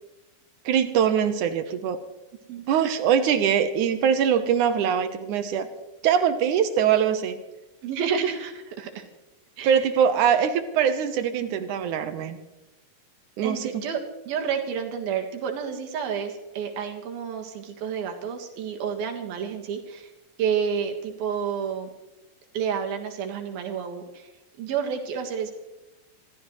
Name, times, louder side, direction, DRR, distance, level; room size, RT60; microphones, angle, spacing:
voice 1, 0.7-2.0 2.7-5.7 6.0-7.4 9.6-12.4 13.4-13.9, right 8 dB, 70° right, 9 dB, 2.2 m, -22 dB
voice 2, 7.8-9.0 9.6-9.7 13.4-20.1 20.4-21.9 22.5-24.3 24.6-25.5, right 7 dB, 85° right, 3 dB, 3.5 m, -30 dB
26.0 x 14.0 x 3.2 m, 1.0 s
omnidirectional pair, 4.2 m